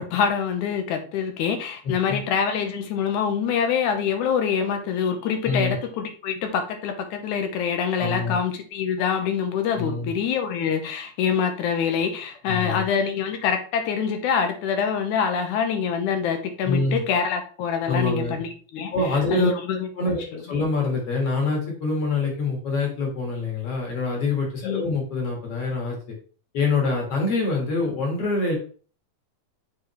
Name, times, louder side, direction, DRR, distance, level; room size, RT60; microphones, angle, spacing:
voice 1, 0.0-18.9 19.3-20.6 24.6-24.9, left 7 dB, 80° left, 6 dB, 2.3 m, -25 dB
voice 2, 1.8-2.2 5.4-5.7 8.0-8.4 9.8-10.1 12.5-12.8 16.6-17.0 17.9-18.4 18.9-19.5 20.0-26.2 26.5-28.6, left 3 dB, 55° left, 0 dB, 2.5 m, -25 dB
7.4 x 4.2 x 3.1 m, 0.41 s
omnidirectional pair, 3.6 m